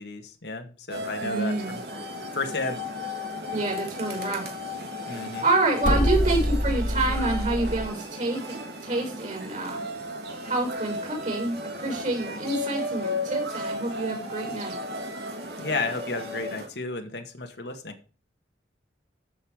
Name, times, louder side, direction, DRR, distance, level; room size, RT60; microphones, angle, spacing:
voice 1, 0.0-1.8 2.3-2.8 5.1-5.4 15.6-17.9, left 3 dB, 70° left, 5 dB, 1.9 m, -32 dB
sound 1, 0.9-16.7, left 1 dB, 65° right, 2.8 m, -35 dB
voice 2, 1.2-1.8 3.5-4.4 5.4-8.6 8.8-9.8 10.4-14.7, right 2 dB, 45° right, 2 dB, 6.5 m, -27 dB
sound 2, 5.8-7.9, equal, 50° left, 2.1 m, -25 dB
13.5 x 7.0 x 5.1 m, 0.36 s
head